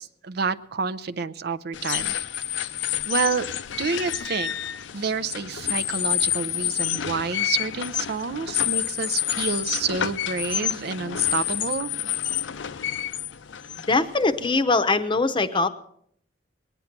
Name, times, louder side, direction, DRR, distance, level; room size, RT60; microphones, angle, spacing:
voice 1, 0.0-2.2 3.1-3.5 3.8-4.6 4.9-11.9, right 5 dB, 60° right, 15 dB, 0.5 m, -28 dB
sound 1, 1.7-14.5, left 11 dB, 80° left, 0.5 m, -28 dB
voice 2, 13.9-15.7, left 3 dB, 25° left, 10 dB, 0.8 m, -22 dB
19.5 x 10.0 x 5.9 m, 0.68 s
head